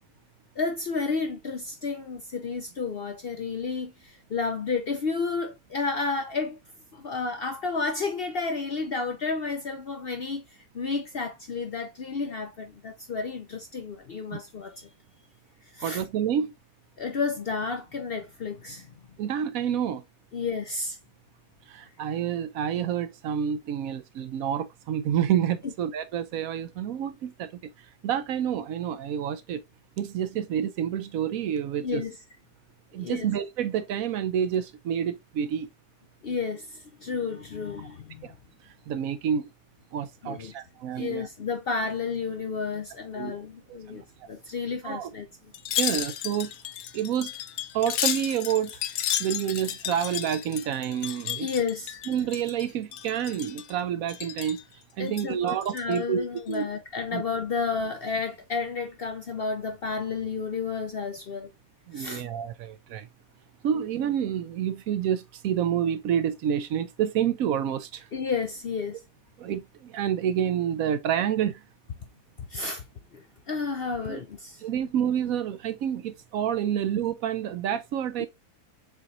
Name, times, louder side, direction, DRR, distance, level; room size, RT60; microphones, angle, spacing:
voice 1, 0.6-6.6 6.9-10.4 10.7-14.9 15.7-16.0 17.0-18.9 20.3-21.0 25.6-25.7 31.8-32.1 33.0-33.3 36.2-38.4 40.2-40.5 41.0-45.3 51.4-52.0 55.0-61.5 61.9-62.2 68.1-69.0 72.5-72.8 73.1-74.6 78.2-78.3, left 4 dB, 60° left, 0.6 m, -31 dB
voice 2, 15.8-16.5 19.2-20.0 21.7-27.5 28.0-29.6 30.0-32.0 32.9-35.7 38.2-38.3 38.9-39.5 39.9-41.3 43.1-43.4 43.9-44.0 44.8-45.1 45.8-46.5 46.9-47.3 47.7-48.8 49.2-51.5 52.1-54.6 55.0-56.7 57.1-57.2 61.9-63.1 63.6-68.1 69.4-71.6 74.1-74.2 74.6-78.3, right 9 dB, 70° right, 1.0 m, -28 dB
Wind chime, 45.5-52.6 52.9-53.7 54.1-54.6 55.1-56.0 56.4-56.6, left 11 dB, 75° left, 1.0 m, -33 dB
6.9 x 3.0 x 2.5 m
omnidirectional pair, 1.6 m